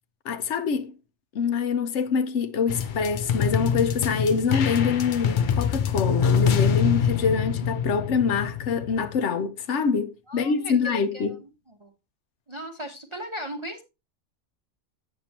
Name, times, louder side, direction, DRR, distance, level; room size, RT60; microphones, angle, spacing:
voice 1, 0.2-0.9 1.3-11.4, left 5 dB, 70° left, 1.0 m, -25 dB
sound 1, 2.7-9.2, left 7 dB, 55° left, 0.6 m, -25 dB
voice 2, 10.3-11.4 11.7-11.9 12.5-13.8, equal, 25° right, 0.9 m, -37 dB
8.6 x 6.8 x 2.8 m
omnidirectional pair, 1.3 m